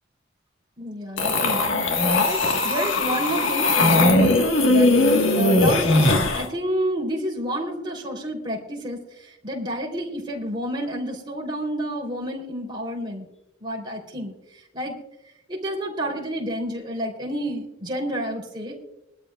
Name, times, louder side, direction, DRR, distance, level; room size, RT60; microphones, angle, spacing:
voice 1, 0.8-13.3 13.6-14.9 15.5-18.8, equal, 25° right, -1 dB, 3.6 m, -30 dB
sound 1, 1.2-6.5, left 2 dB, 85° left, 1.6 m, -19 dB
22.0 x 13.0 x 2.4 m, 0.87 s
head